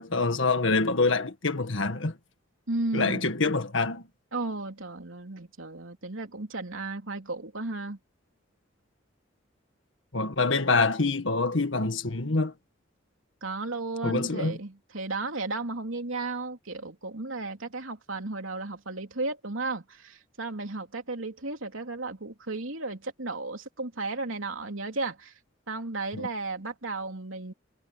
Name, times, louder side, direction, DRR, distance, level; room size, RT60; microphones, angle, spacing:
voice 1, 0.0-2.1 2.9-4.0 10.1-12.5 14.0-14.5 26.1-26.3, left 3 dB, 70° left, 1.8 m, -26 dB
voice 2, 2.7-3.3 4.3-8.0 13.4-25.3 25.7-27.5, right 3 dB, 85° right, 3.2 m, -34 dB
head